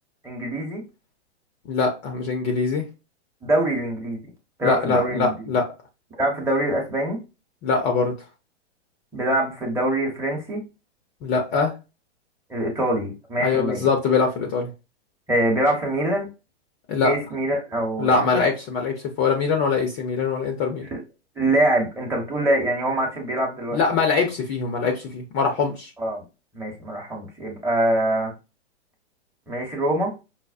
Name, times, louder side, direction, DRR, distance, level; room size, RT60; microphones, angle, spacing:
voice 1, 0.2-0.8 3.4-4.2 4.6-5.3 6.2-7.2 9.1-10.6 12.5-13.9 15.3-16.3 17.0-18.5 20.8-21.0 21.4-23.8 26.0-26.2 26.5-28.3 29.5-30.1, right 1 dB, 5° right, -2 dB, 0.9 m, -24 dB
voice 2, 1.7-2.8 4.6-5.7 7.6-8.1 11.2-11.7 13.4-14.7 16.9-17.1 18.0-20.9 23.7-25.9, left 4 dB, 25° left, 3 dB, 0.6 m, -23 dB
5.4 x 2.0 x 2.4 m, 0.28 s
hypercardioid pair, 135°, 35 cm